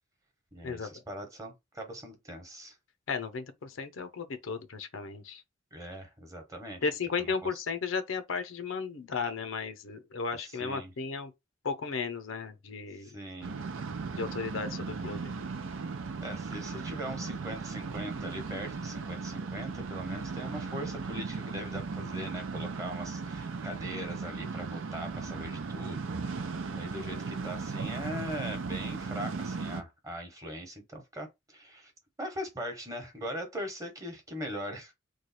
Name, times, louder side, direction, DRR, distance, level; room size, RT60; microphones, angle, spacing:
voice 1, 0.5-2.8 5.7-6.9 7.2-7.6 10.4-10.9 12.9-13.6 16.2-31.9 32.2-34.9, equal, 15° right, 1.0 m, -41 dB
voice 2, 3.1-5.4 6.8-11.3 11.6-13.1 14.2-15.3, left 5 dB, 80° left, 0.6 m, -35 dB
sound 1, 13.4-29.8, right 4 dB, 80° right, 0.6 m, -37 dB
3.2 x 2.3 x 4.1 m
head